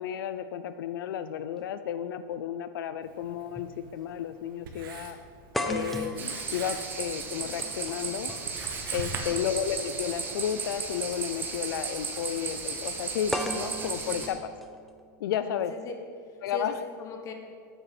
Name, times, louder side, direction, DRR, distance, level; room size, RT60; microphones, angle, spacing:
voice 1, 0.0-5.2 5.7-8.3 8.9-14.5 15.2-15.7 16.4-16.7, left 9 dB, 80° left, 11 dB, 0.5 m, -32 dB
sound 1, 2.3-2.4 3.6-3.7 4.1-4.2 5.5-9.6 10.8-10.9 13.3-15.3, equal, ahead, 0.5 m, -36 dB
Writing, 3.0-9.2, right 5 dB, 90° right, 1.5 m, -44 dB
sound 2, 6.2-14.3, right 5 dB, 15° right, 1.1 m, -35 dB
voice 2, 15.3-17.3, left 3 dB, 30° left, 4 dB, 1.2 m, -40 dB
9.0 x 7.8 x 6.0 m, 2.2 s
supercardioid pair, 155°, 11 cm